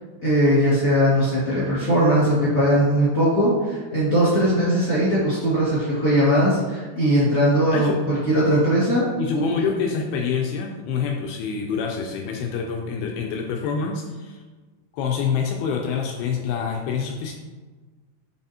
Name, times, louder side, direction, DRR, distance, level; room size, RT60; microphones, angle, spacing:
voice 1, 0.2-9.1 9.3-9.4, equal, 40° left, -10 dB, 1.2 m, -19 dB
voice 2, 9.2-14.4 14.9-17.3, left 6 dB, 85° left, 2 dB, 2.2 m, -26 dB
9.7 x 4.0 x 2.8 m, 1.3 s
omnidirectional pair, 4.9 m